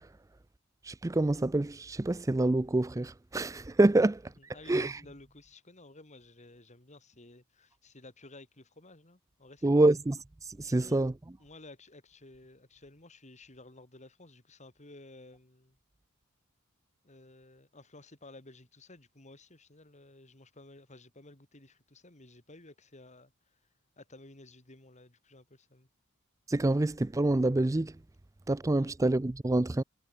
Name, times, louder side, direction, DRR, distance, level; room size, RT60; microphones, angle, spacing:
voice 1, 0.8-4.2 4.7-5.0 9.6-10.2 10.4-11.1 26.5-27.9 28.5-29.8, right 2 dB, 15° right, 0.4 m, -26 dB
voice 2, 4.4-10.0 10.6-11.0 11.4-15.8 17.0-23.6 24.0-25.9 28.7-28.9, left 2 dB, 35° left, 3.1 m, -54 dB
head